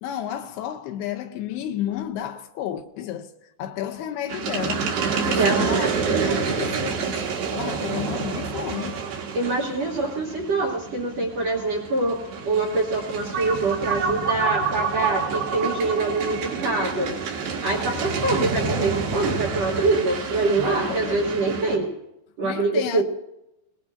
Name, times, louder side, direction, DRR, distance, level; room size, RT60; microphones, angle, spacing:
voice 1, 0.0-7.2 7.5-9.0 20.6-21.4 22.4-23.0, left 11 dB, 80° left, 2.6 m, -32 dB
sound 1, 4.3-21.8, right 5 dB, 75° right, 3.7 m, -29 dB
voice 2, 5.4-6.4 9.3-17.1 17.6-21.9 22.4-23.0, right 3 dB, 60° right, 1.7 m, -25 dB
sound 2, 13.3-18.2, right 5 dB, 35° right, 2.2 m, -28 dB
22.5 x 19.5 x 2.6 m
omnidirectional pair, 4.8 m